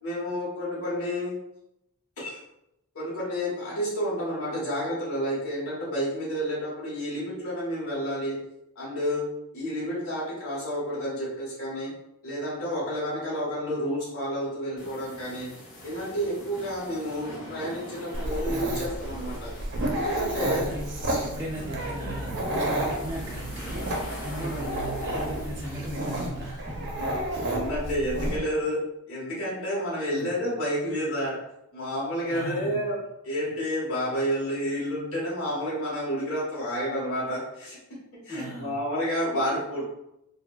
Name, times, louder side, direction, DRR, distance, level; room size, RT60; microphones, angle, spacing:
voice 1, 0.0-1.3 2.2-2.4 2.9-8.4 8.7-9.2 9.5-11.9 12.2-15.5 15.8-19.5 19.9-20.6 21.0-21.2 24.3-24.7 27.0-27.1 27.4-28.8 29.1-31.4 31.7-33.0 33.2-37.8 38.2-40.0, equal, 75° left, -7 dB, 1.3 m, -30 dB
sound 1, 14.8-26.3, equal, 35° left, 1.3 m, -43 dB
Dog, 18.1-28.4, right 1 dB, 55° right, 0.6 m, -31 dB
voice 2, 20.4-21.0 21.2-26.9 30.1-30.3 32.3-32.8 38.3-38.8, right 1 dB, 15° right, -5 dB, 0.5 m, -37 dB
4.6 x 2.3 x 2.3 m, 0.85 s
head